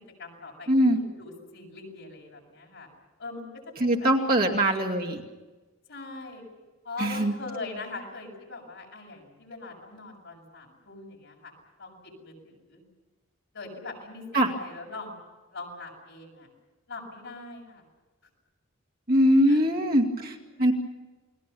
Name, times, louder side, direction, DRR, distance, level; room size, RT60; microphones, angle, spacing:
voice 1, 0.0-2.9 3.2-4.6 5.9-6.4 6.8-11.5 11.8-12.8 13.5-15.2 15.5-16.5 16.9-17.8 19.5-19.6 20.0-20.7, left 3 dB, 60° left, 0 dB, 7.3 m, -42 dB
voice 2, 0.7-1.0 3.8-5.2 7.0-7.3 14.3-14.5 19.1-20.7, equal, 45° right, 0 dB, 2.4 m, -22 dB
29.0 x 21.0 x 7.1 m, 1.2 s
head